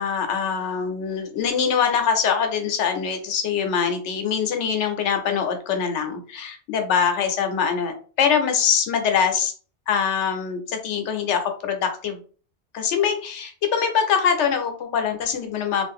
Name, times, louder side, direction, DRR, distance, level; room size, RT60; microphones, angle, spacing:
voice 1, 0.0-9.5 9.9-12.2 12.7-15.8, left 7 dB, 90° left, 6 dB, 1.0 m, -23 dB
2.5 x 2.4 x 3.5 m, 0.40 s
omnidirectional pair, 1.2 m